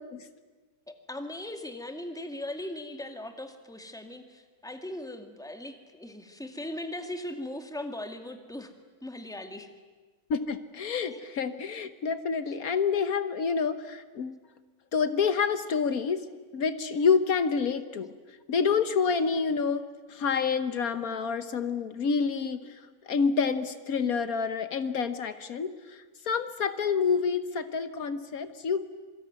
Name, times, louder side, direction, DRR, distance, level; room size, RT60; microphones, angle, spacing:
voice 1, 0.9-8.7 9.0-9.7 11.0-11.2, left 1 dB, ahead, 6 dB, 2.0 m, -39 dB
voice 2, 10.3-14.4 14.9-16.2 16.5-18.1 18.5-19.8 20.1-28.8, left 5 dB, 70° left, 11 dB, 1.5 m, -28 dB
26.5 x 23.5 x 9.5 m, 1.3 s
omnidirectional pair, 1.6 m